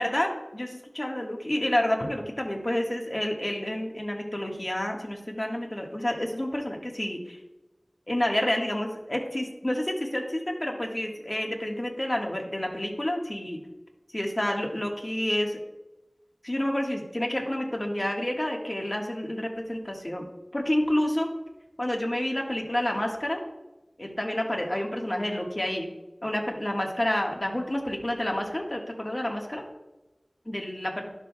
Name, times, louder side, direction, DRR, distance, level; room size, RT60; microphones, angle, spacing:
voice 1, 0.0-7.4 8.1-13.6 14.1-15.6 16.4-20.3 20.5-21.3 21.8-23.4 24.0-25.9 26.2-29.6 30.4-30.9, left 1 dB, 35° left, 1 dB, 1.5 m, -29 dB
12.0 x 6.2 x 2.2 m, 1.0 s
wide cardioid pair, 45°, 0 cm